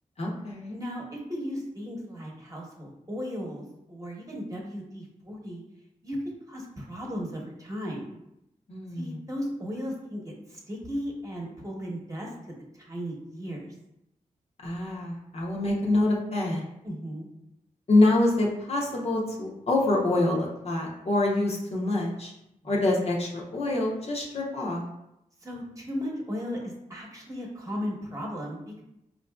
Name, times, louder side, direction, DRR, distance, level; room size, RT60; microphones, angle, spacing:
voice 1, 0.2-0.8 8.7-9.2 14.6-16.6 17.9-22.3 22.6-24.8, left 2 dB, 45° left, -3 dB, 0.7 m, -26 dB
voice 2, 0.7-5.6 6.0-6.2 6.5-8.1 9.0-12.3 12.7-13.7 16.8-17.3 22.6-22.7 25.4-28.8, equal, 25° right, -2 dB, 1.0 m, -36 dB
4.4 x 2.5 x 2.2 m, 0.83 s
cardioid pair, 65°, 14 cm